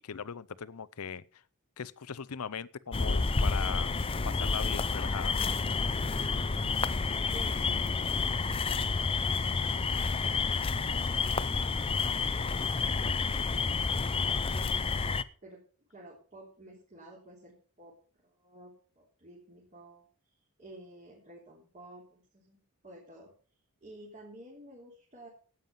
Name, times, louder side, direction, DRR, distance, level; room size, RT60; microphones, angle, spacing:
voice 1, 0.0-1.4 1.8-3.9 4.2-5.3, left 6 dB, 80° left, 0.6 m, -39 dB
sound 1, 2.9-15.2, left 4 dB, 25° left, 0.5 m, -29 dB
voice 2, 7.2-10.7 11.0-11.5 12.0-12.3 12.7-13.7 14.5-15.0 15.4-15.6 15.9-18.0 18.2-23.3 23.8-25.3, right 1 dB, 35° right, 3.4 m, -52 dB
13.0 x 9.2 x 5.5 m
head